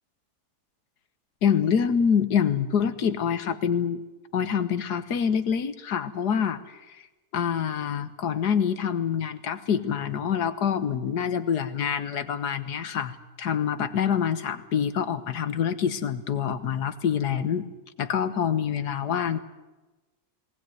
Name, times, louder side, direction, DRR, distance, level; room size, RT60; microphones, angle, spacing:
voice 1, 1.4-4.0 4.3-6.8 7.3-17.7 18.0-19.4, left 7 dB, 85° left, 12 dB, 1.8 m, -26 dB
20.5 x 19.0 x 9.3 m, 1.1 s
omnidirectional pair, 1.7 m